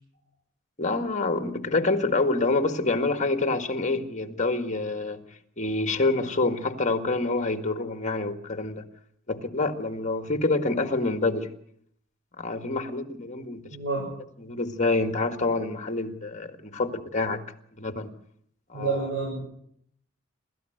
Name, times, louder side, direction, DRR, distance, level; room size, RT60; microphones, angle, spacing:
voice 1, 0.8-5.2 5.6-8.9 9.3-11.5 12.4-13.8 14.4-17.4 17.8-18.1 18.7-19.0, left 3 dB, 40° left, 8 dB, 1.8 m, -27 dB
voice 2, 13.7-14.1 18.7-19.4, right 4 dB, 75° right, -1 dB, 7.6 m, -28 dB
27.5 x 13.5 x 8.0 m, 0.69 s
head